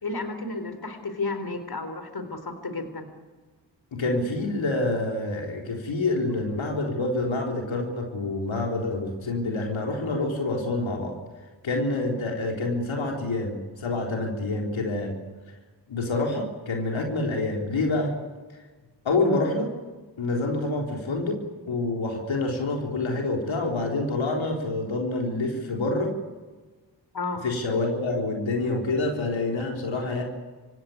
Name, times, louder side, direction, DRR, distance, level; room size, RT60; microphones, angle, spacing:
voice 1, 0.0-3.1 27.1-27.4, left 3 dB, 55° left, 9 dB, 4.0 m, -32 dB
voice 2, 3.9-11.1 11.6-15.2 15.9-18.1 19.0-19.7 20.2-21.4 21.7-26.2 27.4-30.2, left 2 dB, 85° left, 1 dB, 3.9 m, -27 dB
27.5 x 16.5 x 9.5 m, 1.3 s
cardioid pair, 45°, 45 cm